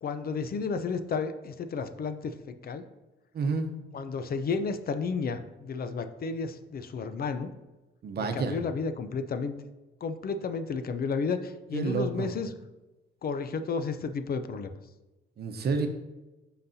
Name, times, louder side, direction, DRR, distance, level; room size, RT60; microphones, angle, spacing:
voice 1, 0.0-2.8 3.9-7.5 8.3-9.6 10.0-12.5 13.2-14.7, left 5 dB, 50° left, 10 dB, 0.6 m, -32 dB
voice 2, 3.3-3.7 8.0-8.6 11.7-12.3 15.4-15.9, right 4 dB, 55° right, 6 dB, 0.9 m, -29 dB
11.5 x 4.0 x 2.7 m, 1.1 s
cardioid pair, 90°, 20 cm